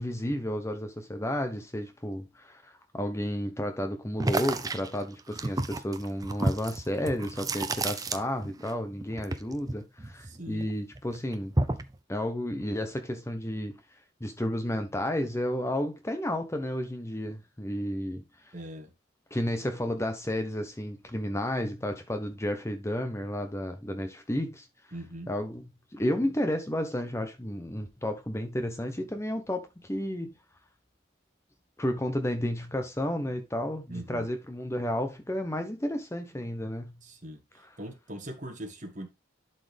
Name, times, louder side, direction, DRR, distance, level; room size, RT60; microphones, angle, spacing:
voice 1, 0.0-11.5 12.1-13.8 14.2-18.2 19.3-24.6 25.3-30.3 31.8-36.9 37.6-37.7, left 1 dB, 15° left, 0.8 m, -32 dB
sound 1, 4.2-8.7 9.0-10.6 11.0-12.0, right 2 dB, 20° right, 0.6 m, -31 dB
voice 2, 10.3-10.7 18.5-18.9 24.9-25.3 33.9-34.3 37.0-37.4 37.8-39.1, right 1 dB, 40° right, 1.6 m, -40 dB
11.5 x 4.3 x 3.4 m
head